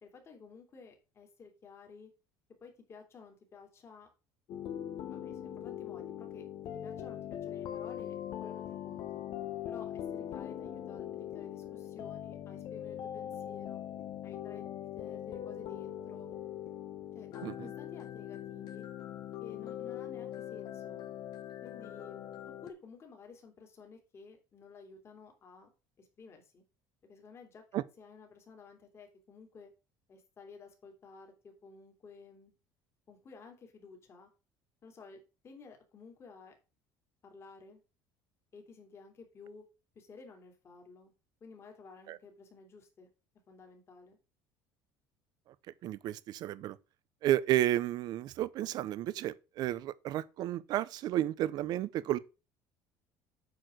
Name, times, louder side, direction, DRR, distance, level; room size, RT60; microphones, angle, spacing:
voice 1, 0.0-2.1 2.6-4.1 5.0-6.4 6.8-9.2 9.7-13.8 14.2-16.3 17.1-18.9 19.4-21.0 21.6-25.7 26.0-26.6 27.1-27.6 28.0-29.7 30.1-32.5 33.1-34.3 34.8-36.5 37.2-37.8 38.5-39.6 39.9-41.1 41.4-43.1 43.5-44.2, left 4 dB, 30° left, 2.7 m, -53 dB
sound 1, 4.5-22.7, left 11 dB, 55° left, 1.3 m, -41 dB
voice 2, 45.8-46.8 47.2-52.2, right 13 dB, 55° right, 0.7 m, -32 dB
8.1 x 4.8 x 6.2 m
cardioid pair, 140°, 8 cm